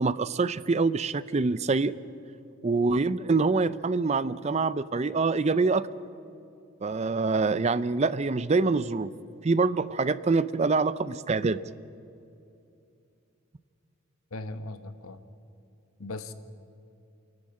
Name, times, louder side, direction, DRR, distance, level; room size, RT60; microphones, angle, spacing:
voice 1, 0.0-1.9 2.6-5.9 6.8-9.1 9.4-11.6, right 3 dB, 30° right, 16 dB, 0.5 m, -25 dB
voice 2, 14.3-15.2 16.0-16.3, left 2 dB, 90° left, 10 dB, 1.2 m, -38 dB
28.5 x 12.0 x 8.6 m, 2.6 s
head